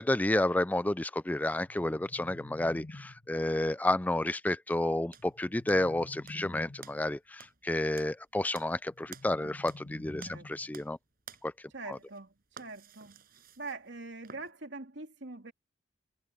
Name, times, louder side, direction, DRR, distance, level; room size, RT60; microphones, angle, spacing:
voice 1, 0.0-11.0 11.4-11.5 11.9-12.0, left 1 dB, 10° left, 0.4 m, -30 dB
sound 1, 1.5-3.5 5.2-7.1 8.9-10.9, left 2 dB, 40° left, 1.9 m, -48 dB
sound 2, 5.1-6.4 6.8-9.9 10.2-11.0 11.2-14.5, right 7 dB, 55° right, 6.2 m, -53 dB
voice 2, 10.2-10.7 11.7-13.2 13.6-15.5, right 3 dB, 70° right, 2.9 m, -44 dB
head